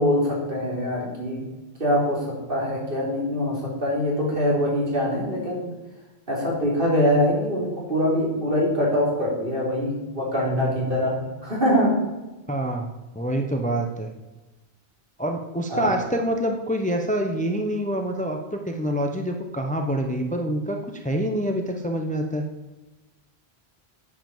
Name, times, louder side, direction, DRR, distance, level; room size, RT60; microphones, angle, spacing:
voice 1, 0.0-1.4 1.8-5.7 6.3-11.9 15.7-16.0, equal, 55° right, -3 dB, 4.1 m, -23 dB
voice 2, 12.5-12.9 13.1-14.1 15.2-22.5, right 1 dB, 10° left, 4 dB, 0.9 m, -26 dB
9.1 x 8.0 x 7.3 m, 1.1 s
omnidirectional pair, 1.1 m